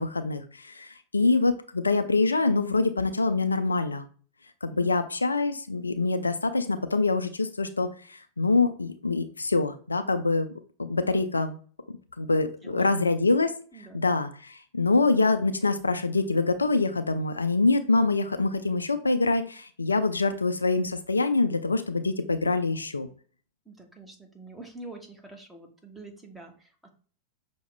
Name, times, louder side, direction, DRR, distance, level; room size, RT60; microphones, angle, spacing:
voice 1, 0.0-4.1 4.6-10.5 10.8-11.6 12.2-13.5 13.9-23.1, left 3 dB, 80° left, 9 dB, 0.3 m, -25 dB
voice 2, 13.7-14.0 23.6-26.9, right 2 dB, 5° right, 3 dB, 0.9 m, -46 dB
5.7 x 2.1 x 3.3 m, 0.42 s
figure-of-eight pair, 90°, 0 cm